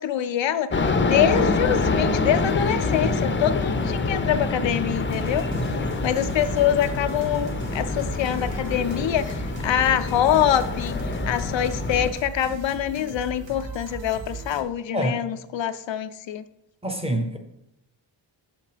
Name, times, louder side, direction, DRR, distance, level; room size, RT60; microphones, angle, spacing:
voice 1, 0.0-5.4 6.0-11.0 11.3-16.4, left 10 dB, 75° left, 11 dB, 0.5 m, -25 dB
sound 1, 0.7-12.1, left 3 dB, 25° left, 0.5 m, -26 dB
sound 2, 4.9-14.6, right 4 dB, 70° right, 1.1 m, -37 dB
voice 2, 5.5-5.9 14.9-15.3 16.8-17.4, equal, 15° right, 6 dB, 0.7 m, -27 dB
6.5 x 6.0 x 5.0 m, 0.83 s
wide cardioid pair, 175°, 46 cm